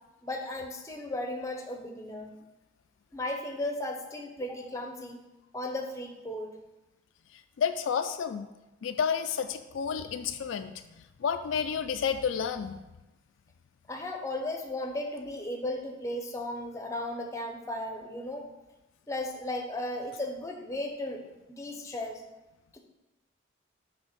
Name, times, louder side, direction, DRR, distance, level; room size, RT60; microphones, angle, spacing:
voice 1, 0.2-2.3 3.1-5.2 5.5-6.5 13.9-18.5 19.1-22.2 22.7-22.8, left 1 dB, 15° left, 3 dB, 0.7 m, -35 dB
voice 2, 7.6-8.5 8.8-10.7 11.2-12.8, left 7 dB, 70° left, 8 dB, 0.3 m, -30 dB
6.7 x 3.5 x 5.9 m, 1.0 s
head